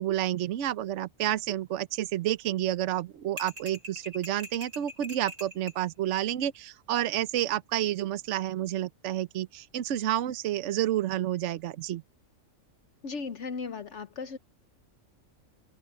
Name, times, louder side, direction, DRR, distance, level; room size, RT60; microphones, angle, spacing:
voice 1, 0.0-12.0, right 12 dB, 65° right, 1.0 m, -30 dB
sound 1, 3.4-5.8, equal, 85° right, 6.2 m, -42 dB
voice 2, 13.0-14.4, left 4 dB, 60° left, 1.1 m, -36 dB
omnidirectional pair, 1.4 m